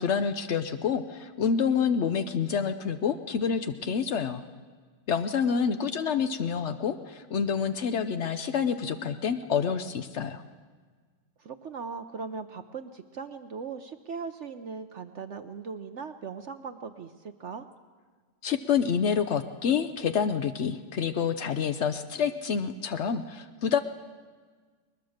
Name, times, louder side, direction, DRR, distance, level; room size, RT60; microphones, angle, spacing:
voice 1, 0.0-4.4 5.1-10.4 18.4-23.8, left 7 dB, 80° left, 8 dB, 0.6 m, -28 dB
voice 2, 11.4-17.7, right 5 dB, 65° right, 8 dB, 0.7 m, -39 dB
21.0 x 21.0 x 6.5 m, 1.5 s
omnidirectional pair, 2.1 m